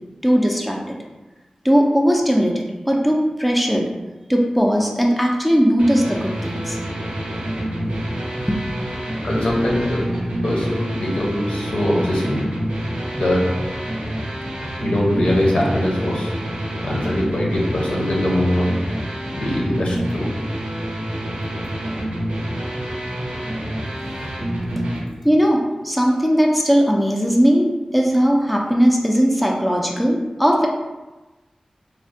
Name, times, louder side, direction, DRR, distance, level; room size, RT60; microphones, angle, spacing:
voice 1, 0.2-1.0 1.6-3.9 4.3-6.8 8.5-8.7 23.4-23.6 25.2-30.7, equal, ahead, 0 dB, 0.3 m, -18 dB
sound 1, 5.8-25.0, right 1 dB, 90° right, 0.6 m, -27 dB
voice 2, 9.2-10.0 10.4-12.4 13.1-13.4 14.8-18.8 19.3-20.3, left 1 dB, 75° left, -3 dB, 0.7 m, -22 dB
3.2 x 2.1 x 2.6 m, 1.1 s
wide cardioid pair, 85°, 2 cm